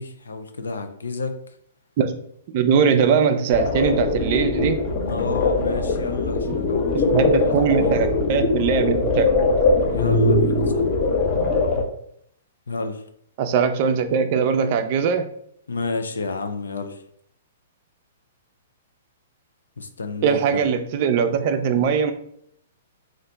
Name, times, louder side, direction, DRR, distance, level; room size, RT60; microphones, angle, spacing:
voice 1, 0.0-1.3 5.0-8.0 9.9-10.9 12.7-13.0 15.7-17.0 19.8-20.7, left 4 dB, 85° left, 7 dB, 0.5 m, -30 dB
voice 2, 2.5-4.8 6.9-9.3 13.4-15.3 20.2-22.1, right 6 dB, 50° right, 8 dB, 0.4 m, -21 dB
sound 1, 3.5-11.8, left 3 dB, 40° left, 0.8 m, -21 dB
2.8 x 2.5 x 3.3 m, 0.69 s
hypercardioid pair, 125°, 0 cm